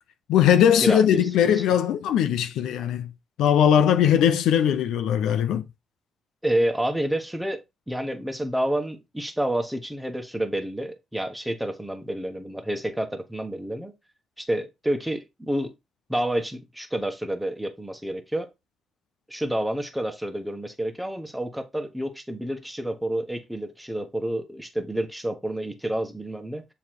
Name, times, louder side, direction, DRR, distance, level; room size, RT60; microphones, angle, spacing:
voice 1, 0.3-3.1 3.4-5.6, left 9 dB, 85° left, 0.6 m, -20 dB
voice 2, 0.8-1.2 1.5-1.6 6.4-7.6 7.9-13.9 14.4-15.7 16.1-18.5 19.3-26.6, right 1 dB, 5° right, 1.3 m, -29 dB
7.1 x 3.2 x 4.6 m
cardioid pair, 90°, 0 cm